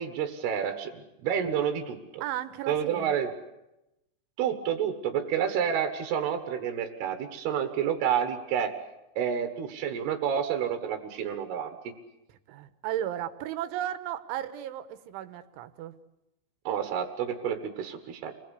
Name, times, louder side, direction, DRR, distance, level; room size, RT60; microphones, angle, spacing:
voice 1, 0.0-2.2 2.7-3.3 4.4-8.7 9.2-11.7 16.6-18.3, right 8 dB, 65° right, 6 dB, 3.3 m, -29 dB
voice 2, 2.2-3.1 12.3-15.9, right 11 dB, 90° right, 10 dB, 3.5 m, -35 dB
27.5 x 20.5 x 8.3 m, 0.91 s
omnidirectional pair, 5.4 m